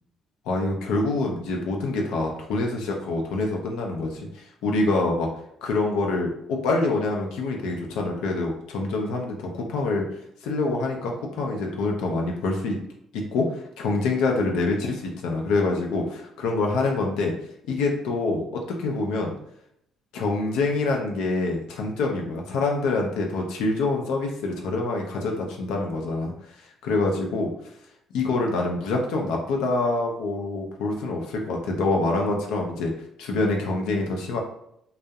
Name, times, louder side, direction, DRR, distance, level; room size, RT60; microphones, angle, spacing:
voice 1, 0.5-5.3 5.6-10.1 10.4-12.8 13.1-13.5 13.8-17.3 17.7-19.3 20.1-26.3 26.8-27.5 28.1-32.9 33.2-34.4, left 3 dB, 90° left, 1 dB, 0.4 m, -26 dB
2.3 x 2.0 x 2.6 m, 0.75 s
cardioid pair, 115°, 0 cm